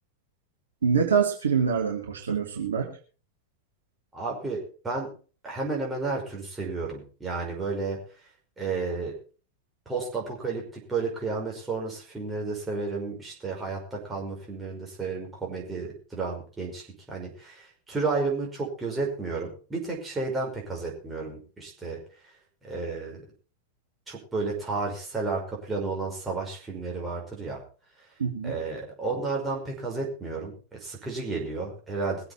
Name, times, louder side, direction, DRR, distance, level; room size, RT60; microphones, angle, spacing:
voice 1, 0.8-2.9 28.2-28.5, right 6 dB, 70° right, 0 dB, 2.7 m, -25 dB
voice 2, 4.1-5.1 5.4-8.0 8.6-9.1 9.9-22.0 22.6-23.2 24.1-27.6 28.4-32.3, right 4 dB, 10° right, -2 dB, 5.5 m, -32 dB
22.0 x 8.0 x 4.4 m, 0.38 s
figure-of-eight pair, 90°, 0 cm